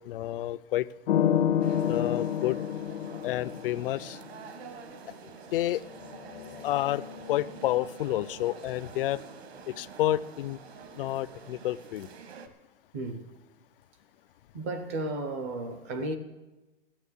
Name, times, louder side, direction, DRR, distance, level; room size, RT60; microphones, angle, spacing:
voice 1, 0.1-0.9 1.9-2.6 3.2-4.2 5.5-5.8 6.6-7.0 7.3-9.2 9.7-10.6 11.0-12.1, left 14 dB, 60° left, 0.5 m, -29 dB
sound 1, 1.1-4.2 5.9-7.6, left 9 dB, 75° left, 1.2 m, -29 dB
sound 2, 1.6-12.5, right 5 dB, 70° right, 1.4 m, -47 dB
voice 2, 12.9-13.2 14.5-16.2, right 2 dB, 15° right, 0.4 m, -33 dB
13.5 x 8.7 x 8.3 m
supercardioid pair, 180°, 32 cm